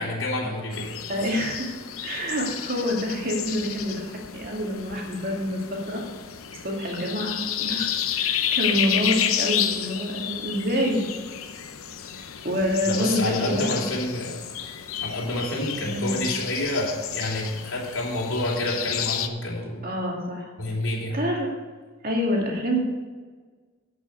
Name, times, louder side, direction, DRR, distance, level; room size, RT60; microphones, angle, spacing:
voice 1, 0.0-1.2 12.8-14.4 15.0-19.8 20.6-21.2, left 1 dB, 70° left, -3 dB, 3.5 m, -28 dB
sound 1, 0.7-19.3, left 9 dB, 85° left, 0.8 m, -31 dB
voice 2, 1.1-1.7 2.0-6.0 6.6-11.0 12.1-13.9 15.8-16.3 19.8-20.5 21.1-21.5 22.0-22.8, equal, 45° right, -1 dB, 2.4 m, -27 dB
11.5 x 6.1 x 6.8 m, 1.4 s
head